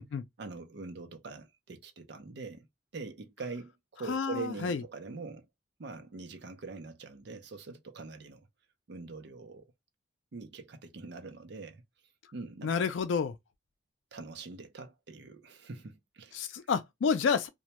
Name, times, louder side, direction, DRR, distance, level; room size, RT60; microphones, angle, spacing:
voice 1, 0.4-2.7 2.9-5.5 5.8-8.5 8.9-9.6 10.3-11.8 12.3-12.9 14.1-16.5, right 4 dB, 65° right, 0.5 m, -43 dB
voice 2, 4.1-4.8 12.6-13.4 16.3-17.5, left 5 dB, 85° left, 0.4 m, -29 dB
2.1 x 2.1 x 2.8 m
head